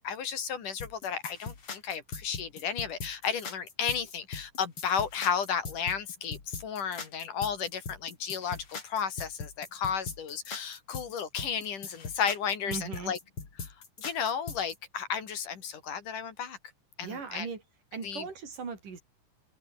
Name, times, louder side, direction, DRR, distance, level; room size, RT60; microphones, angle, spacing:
voice 1, 0.0-13.2 13.6-13.7 14.0-16.6 17.0-17.5 18.0-18.3, left 7 dB, 70° left, 4.4 m, -33 dB
sound 1, 0.8-14.8, left 5 dB, 40° left, 4.4 m, -40 dB
voice 2, 12.7-13.1 17.0-17.6 17.9-19.0, right 5 dB, 70° right, 6.1 m, -38 dB
omnidirectional pair, 3.8 m